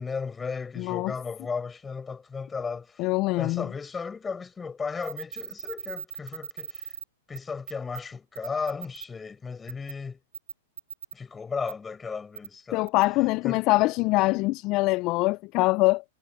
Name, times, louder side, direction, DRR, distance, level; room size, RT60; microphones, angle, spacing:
voice 1, 0.0-3.0 3.4-6.9 7.3-10.2 11.1-12.9 13.4-13.6, left 5 dB, 15° left, 7.7 m, -35 dB
voice 2, 0.8-1.1 3.0-3.7 12.7-16.0, left 21 dB, 40° left, 0.7 m, -24 dB
sound 1, 5.0-7.0 7.3-7.4 7.7-8.0 8.4-9.1 9.7-9.9 10.3-11.1 11.7-11.8 12.3-12.5 12.9-13.0, right 7 dB, 80° right, 4.3 m, -39 dB
hypercardioid pair, 110°, 0 cm